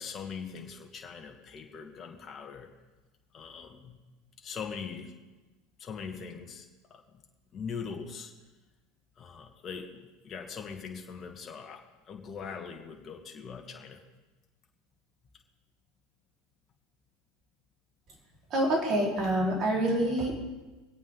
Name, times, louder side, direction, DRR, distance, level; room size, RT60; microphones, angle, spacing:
voice 1, 0.0-2.7 3.3-4.0 4.4-5.1 5.8-7.2 7.5-8.3 9.2-14.0, left 6 dB, 35° left, 2 dB, 2.0 m, -41 dB
voice 2, 18.5-20.3, right 1 dB, 45° right, -2 dB, 4.4 m, -26 dB
23.5 x 8.6 x 3.9 m, 1.2 s
hypercardioid pair, 85°, 0 cm